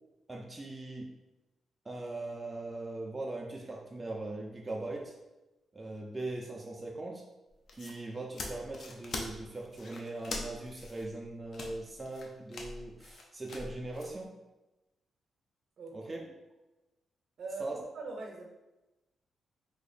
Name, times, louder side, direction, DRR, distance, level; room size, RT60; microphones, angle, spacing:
voice 1, 0.3-1.1 1.8-5.1 5.7-7.2 7.7-14.3 15.9-16.2 17.6-17.8, right 2 dB, 20° right, -1 dB, 0.4 m, -40 dB
sound 1, 7.5-14.1, left 2 dB, 55° left, 0.5 m, -43 dB
voice 2, 15.8-16.1 17.4-18.4, right 3 dB, 60° right, 1 dB, 0.7 m, -42 dB
2.8 x 2.5 x 4.0 m, 1.0 s
cardioid pair, 130°, 0 cm